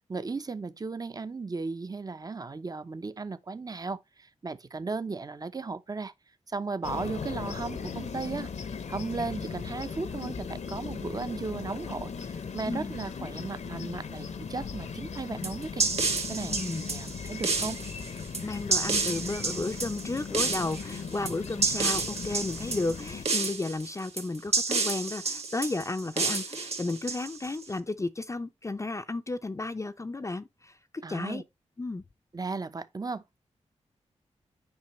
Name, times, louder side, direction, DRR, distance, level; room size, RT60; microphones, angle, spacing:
voice 1, 0.1-6.1 6.5-15.9 16.3-16.6 16.9-17.8 31.0-31.4 32.3-33.4, right 4 dB, 30° right, 0.6 m, -36 dB
sound 1, 6.8-23.3, left 6 dB, 75° left, 0.9 m, -38 dB
sound 2, 15.4-27.6, right 4 dB, 60° right, 2.0 m, -30 dB
voice 2, 16.5-16.8 18.4-30.8 31.1-31.4 31.8-32.0, left 2 dB, 25° left, 0.5 m, -33 dB
9.6 x 5.1 x 3.1 m
cardioid pair, 65°, 12 cm